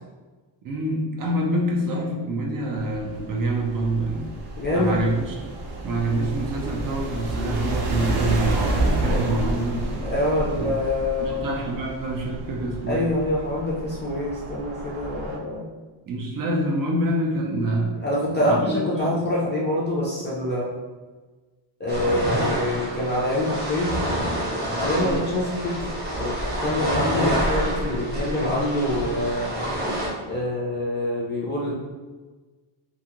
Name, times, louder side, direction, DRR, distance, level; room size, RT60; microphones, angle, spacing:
voice 1, 0.6-4.3 4.7-5.3 5.8-9.8 10.6-10.7 11.2-13.0 16.1-18.0 18.3-19.2 24.9-25.2, right 1 dB, 45° right, 0 dB, 0.4 m, -26 dB
sound 1, 2.8-15.4, right 2 dB, 85° right, 0.7 m, -30 dB
voice 2, 4.6-5.0 9.0-9.3 10.0-11.6 12.9-15.7 18.0-20.7 21.8-24.0 24.8-25.9 26.2-29.5 30.3-31.7, left 1 dB, 25° left, -6 dB, 0.3 m, -25 dB
sound 2, 21.9-30.1, equal, 20° right, 0.8 m, -27 dB
2.5 x 2.3 x 2.8 m, 1.3 s
cardioid pair, 150°, 50 cm